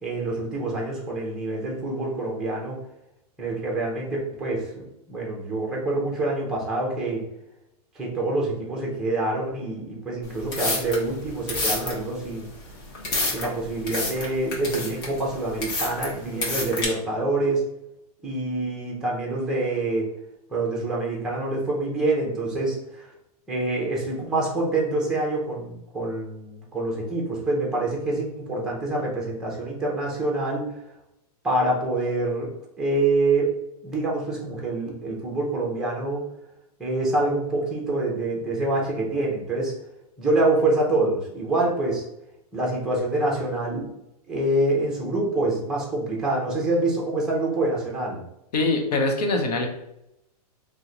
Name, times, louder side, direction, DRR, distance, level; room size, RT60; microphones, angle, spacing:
voice 1, 0.0-2.8 3.4-7.3 7.9-12.5 13.3-17.6 18.2-20.1 20.5-23.1 23.5-30.7 31.4-32.5 32.8-33.5 33.8-36.3 36.8-39.7 40.2-42.0 42.5-43.9 44.3-48.2, right 2 dB, 5° right, -2 dB, 0.5 m, -26 dB
sound 1, 10.3-16.9, left 2 dB, 35° left, 0.9 m, -30 dB
voice 2, 48.5-49.7, left 2 dB, 85° left, 3 dB, 0.9 m, -23 dB
3.0 x 2.1 x 3.7 m, 0.84 s
supercardioid pair, 165°, 20 cm